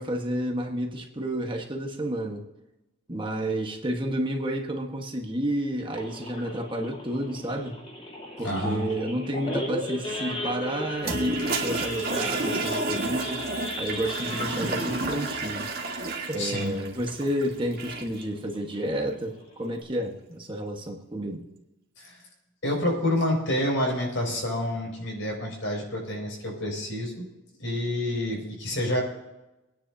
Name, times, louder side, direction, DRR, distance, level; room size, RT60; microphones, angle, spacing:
voice 1, 0.0-2.4 3.1-7.8 8.4-13.5 13.8-15.6 16.3-21.4, right 1 dB, 25° right, 2 dB, 1.3 m, -30 dB
Idling / Accelerating revving vroom / Sawing, 5.9-17.0 17.4-17.6 17.9-18.0 18.4-18.7 19.2-19.3 19.5-19.8, left 1 dB, 30° left, 2.9 m, -36 dB
voice 2, 8.4-8.8 16.4-16.7 22.0-22.2 22.6-27.2 27.6-29.0, left 1 dB, 65° left, -1 dB, 5.7 m, -28 dB
Toilet flush, 11.0-18.2, right 3 dB, 50° right, 1.8 m, -31 dB
24.5 x 10.0 x 2.8 m, 0.99 s
head